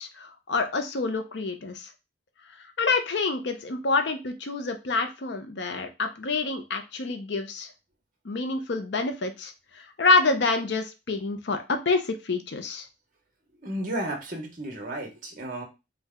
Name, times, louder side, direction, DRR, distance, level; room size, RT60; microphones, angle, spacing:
voice 1, 0.0-1.9 2.8-7.7 8.2-9.5 9.8-12.9, left 3 dB, 65° left, 7 dB, 0.6 m, -27 dB
voice 2, 13.5-15.6, right 1 dB, 45° right, 3 dB, 1.2 m, -33 dB
4.5 x 2.2 x 3.6 m, 0.27 s
head